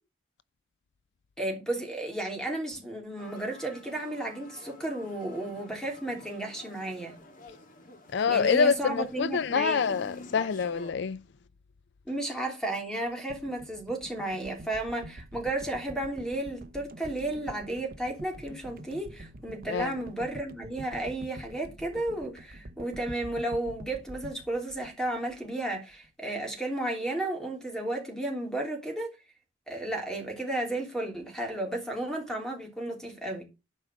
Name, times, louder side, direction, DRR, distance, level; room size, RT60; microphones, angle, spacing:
voice 1, 1.4-7.1 8.3-9.8 12.1-29.1 29.7-33.4, right 1 dB, 5° left, 3.1 m, -33 dB
sound 1, 3.2-10.9, left 1 dB, 45° left, 1.7 m, -48 dB
voice 2, 8.1-11.2 19.7-19.9, left 6 dB, 65° left, 0.4 m, -26 dB
sound 2, 13.3-25.6 25.9-26.1, right 1 dB, 50° right, 0.9 m, -47 dB
11.5 x 4.8 x 6.3 m
head